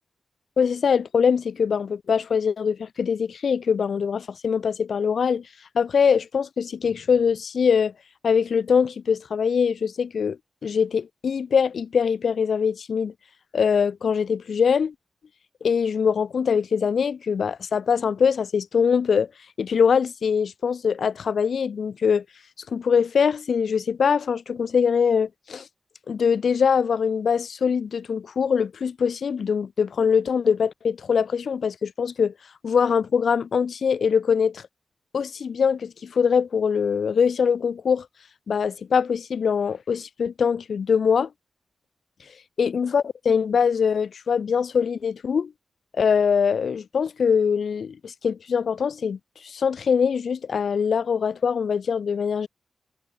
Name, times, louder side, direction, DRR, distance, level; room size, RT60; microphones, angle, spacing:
voice 1, 0.6-5.4 5.7-7.9 8.2-10.4 10.6-13.1 13.5-14.9 15.6-19.3 19.6-22.2 22.7-25.7 26.1-32.3 32.6-34.6 35.1-38.1 38.5-41.3 42.6-45.5 46.0-49.2 49.4-52.5, left 6 dB, 75° left, 4.5 m, -23 dB
wide cardioid pair, 90°, 0 cm